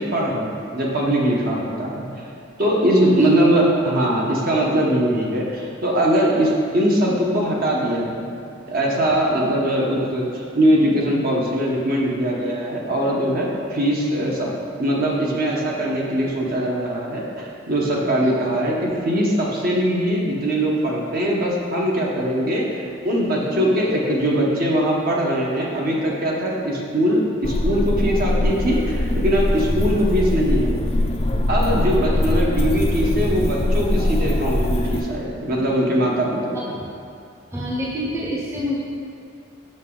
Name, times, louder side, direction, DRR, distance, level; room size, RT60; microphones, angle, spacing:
voice 1, 0.0-2.1 2.6-8.3 8.7-14.5 14.8-30.8 31.5-36.6, right 1 dB, 45° right, -3 dB, 1.0 m, -21 dB
sound 1, 27.4-35.0, left 1 dB, 30° left, 0.4 m, -22 dB
voice 2, 37.5-38.8, left 1 dB, 15° right, -6 dB, 0.7 m, -27 dB
6.5 x 5.9 x 3.8 m, 2.6 s
head